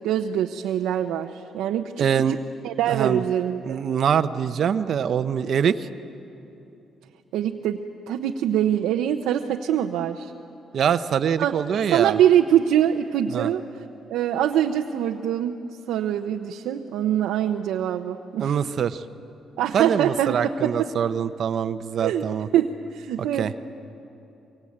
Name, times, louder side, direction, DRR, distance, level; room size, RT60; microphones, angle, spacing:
voice 1, 0.0-2.4 2.6-3.8 7.3-10.3 11.4-11.5 11.9-13.6 14.1-15.6 15.9-18.6 19.6-20.9 22.0-22.2 22.5-23.6, right 10 dB, 90° right, 3 dB, 0.8 m, -24 dB
voice 2, 2.0-2.4 2.9-3.2 3.6-5.9 10.7-12.2 13.3-13.5 18.4-19.0 19.7-22.5 23.4-23.5, right 8 dB, 60° right, 12 dB, 0.8 m, -24 dB
24.5 x 24.0 x 8.7 m, 2.9 s
cardioid pair, 90°, 0 cm